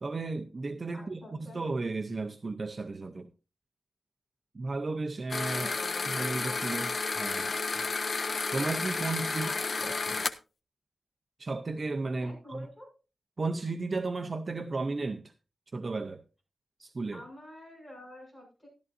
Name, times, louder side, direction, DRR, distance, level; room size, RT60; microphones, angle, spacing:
voice 1, 0.0-1.2 1.5-3.3 4.5-5.7 6.1-7.5 8.5-9.5 9.8-10.2 11.4-12.7 13.4-15.3 15.7-16.2 16.8-17.2, right 3 dB, 35° right, 0.6 m, -34 dB
voice 2, 0.9-1.6 5.5-6.1 9.3-10.2 12.2-12.9 17.1-18.7, equal, 10° left, 7.2 m, -48 dB
sound 1, 5.3-10.3, left 4 dB, 45° left, 0.7 m, -32 dB
13.5 x 12.0 x 2.5 m
wide cardioid pair, 175°, 0 cm